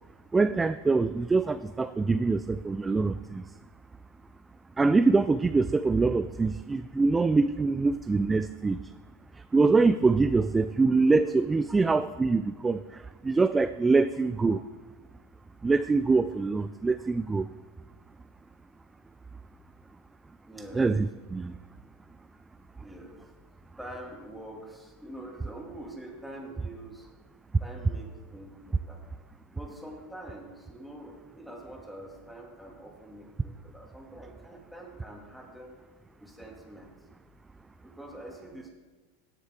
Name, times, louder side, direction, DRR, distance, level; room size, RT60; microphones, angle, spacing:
voice 1, 0.3-3.4 4.8-8.8 9.5-14.6 15.6-17.5 20.7-21.5, right 3 dB, 15° right, 12 dB, 0.3 m, -24 dB
voice 2, 20.5-20.9 22.8-27.1 27.6-29.0 29.5-35.8 36.2-36.9 37.8-38.7, right 1 dB, ahead, -1 dB, 2.5 m, -45 dB
16.0 x 7.4 x 3.8 m, 1.3 s
hypercardioid pair, 105°, 0 cm